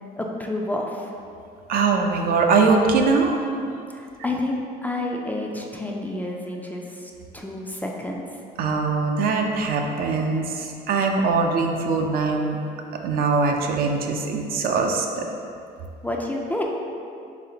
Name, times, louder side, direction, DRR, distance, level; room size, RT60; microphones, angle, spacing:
voice 1, 0.2-1.1 3.9-8.2 16.0-16.6, left 1 dB, 10° left, 0 dB, 0.3 m, -29 dB
voice 2, 1.7-3.5 8.6-12.7 13.0-15.2, right 4 dB, 60° right, 3 dB, 0.4 m, -22 dB
4.1 x 3.3 x 2.8 m, 2.5 s
cardioid pair, 110°, 17 cm